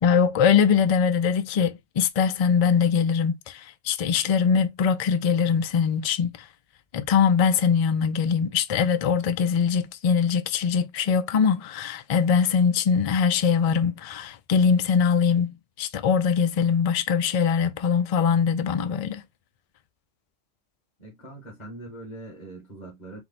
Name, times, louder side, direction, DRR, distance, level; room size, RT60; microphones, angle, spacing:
voice 1, 0.0-6.4 6.9-19.2, left 6 dB, 55° left, 0.4 m, -22 dB
voice 2, 21.0-23.2, right 2 dB, 35° left, 1.7 m, -42 dB
4.5 x 2.2 x 4.1 m
omnidirectional pair, 1.3 m